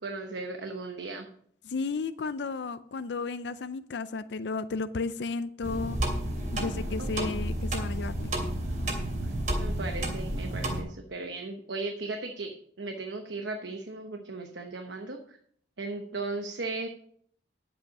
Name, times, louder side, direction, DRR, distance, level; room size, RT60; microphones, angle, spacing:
voice 1, 0.0-1.3 7.0-7.3 9.2-15.4 15.8-16.9, right 3 dB, 80° right, 4 dB, 1.0 m, -37 dB
voice 2, 1.6-6.0 6.5-8.3, left 4 dB, 70° left, 12 dB, 0.5 m, -33 dB
sound 1, 5.6-10.8, right 1 dB, 45° right, 2.7 m, -31 dB
10.5 x 7.7 x 5.4 m, 0.63 s
head